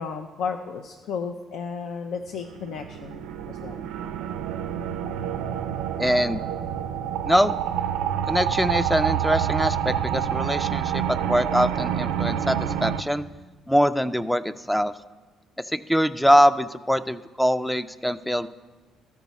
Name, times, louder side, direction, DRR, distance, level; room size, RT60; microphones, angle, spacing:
voice 1, 0.0-3.9, left 5 dB, 75° left, 4 dB, 0.5 m, -33 dB
sound 1, 2.3-13.0, right 9 dB, 85° right, 0.4 m, -27 dB
voice 2, 6.0-6.4 7.3-7.6 8.3-13.2 13.7-14.9 15.6-18.5, equal, 5° left, 13 dB, 0.3 m, -23 dB
13.0 x 4.7 x 4.1 m, 1.3 s
supercardioid pair, 75°, 0 cm